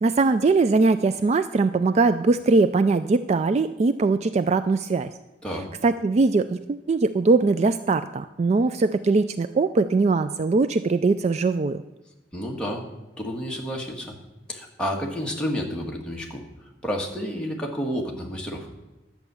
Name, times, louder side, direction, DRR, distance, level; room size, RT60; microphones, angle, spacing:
voice 1, 0.0-5.1 5.8-11.8, right 3 dB, 35° right, 11 dB, 0.3 m, -21 dB
voice 2, 12.3-12.9 13.2-14.1 14.5-16.4 16.8-18.7, equal, 5° left, -2 dB, 1.7 m, -30 dB
11.0 x 8.1 x 7.0 m, 1.0 s
head